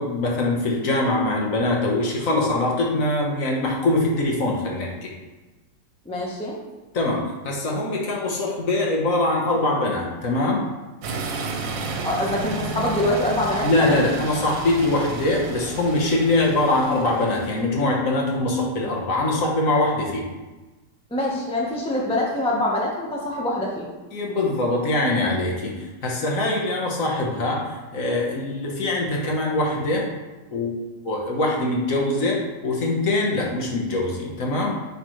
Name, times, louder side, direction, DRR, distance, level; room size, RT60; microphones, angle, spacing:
voice 1, 0.0-5.1 6.9-10.6 13.6-20.3 24.1-30.1 30.5-30.7 31.0-34.8, left 2 dB, 50° left, -2 dB, 1.4 m, -23 dB
voice 2, 6.0-6.6 12.0-14.0 21.1-23.9, left 1 dB, 5° left, -3 dB, 0.5 m, -25 dB
sound 1, 11.0-17.6, right 4 dB, 85° right, 1.5 m, -32 dB
10.0 x 3.9 x 3.1 m, 1.2 s
omnidirectional pair, 1.9 m